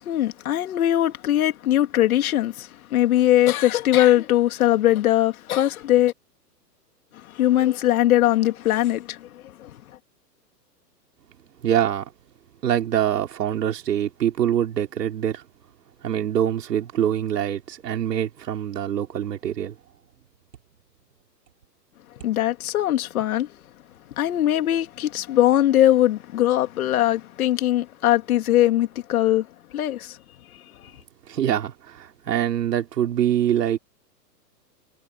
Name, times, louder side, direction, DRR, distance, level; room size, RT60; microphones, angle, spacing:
voice 1, 0.0-6.1 7.1-10.0 22.2-23.5 24.1-29.5 29.7-30.2 30.5-30.9, left 13 dB, 60° left, 3.2 m, -21 dB
voice 2, 11.6-12.1 12.6-15.4 16.0-19.7 31.3-33.8, right 10 dB, 75° right, 3.3 m, -24 dB
hypercardioid pair, 150°, 49 cm